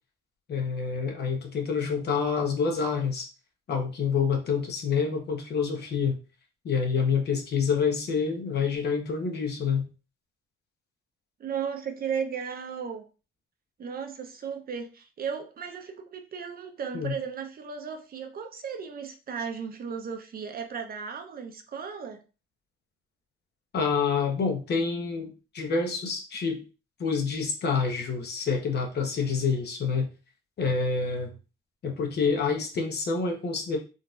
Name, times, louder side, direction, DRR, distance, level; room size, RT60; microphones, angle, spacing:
voice 1, 0.5-3.3 3.7-6.2 6.6-9.9 16.9-17.1 23.7-26.6 27.0-30.1 30.6-31.3 31.8-33.8, left 5 dB, 55° left, 2 dB, 0.9 m, -27 dB
voice 2, 11.4-13.0 13.8-22.2, right 6 dB, 50° right, 5 dB, 0.7 m, -35 dB
3.8 x 2.5 x 2.4 m, 0.32 s
cardioid pair, 90°, 20 cm